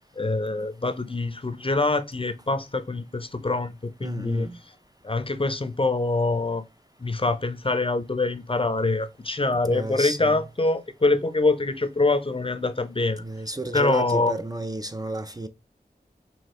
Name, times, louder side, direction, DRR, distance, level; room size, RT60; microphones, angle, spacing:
voice 1, 0.2-4.5 5.0-6.6 7.0-13.2 13.7-14.3, left 2 dB, 30° left, 0.5 m, -25 dB
voice 2, 4.0-4.6 9.6-10.4 13.2-15.5, right 2 dB, 20° right, 0.4 m, -32 dB
4.6 x 2.8 x 3.0 m
wide cardioid pair, 55°, 17 cm